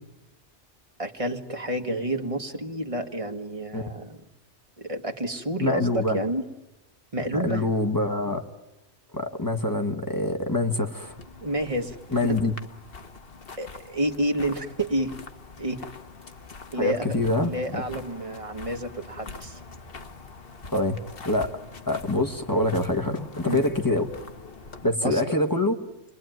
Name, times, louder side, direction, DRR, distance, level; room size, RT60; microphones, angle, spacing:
voice 1, 1.0-4.2 4.8-6.4 7.1-7.7 11.4-12.0 12.2-12.4 13.6-15.1 15.6-15.8 16.7-19.6 23.4-23.6 25.0-25.4, right 1 dB, 30° right, 4 dB, 1.6 m, -29 dB
voice 2, 5.6-6.2 7.3-8.4 9.1-11.1 12.1-12.5 16.8-17.8 20.7-21.0 21.2-21.6 21.9-24.1 24.8-25.8, left 2 dB, 15° left, 4 dB, 1.5 m, -25 dB
sound 1, 11.0-24.9, left 4 dB, 50° left, 1.4 m, -44 dB
28.5 x 21.5 x 9.2 m, 1.0 s
omnidirectional pair, 1.2 m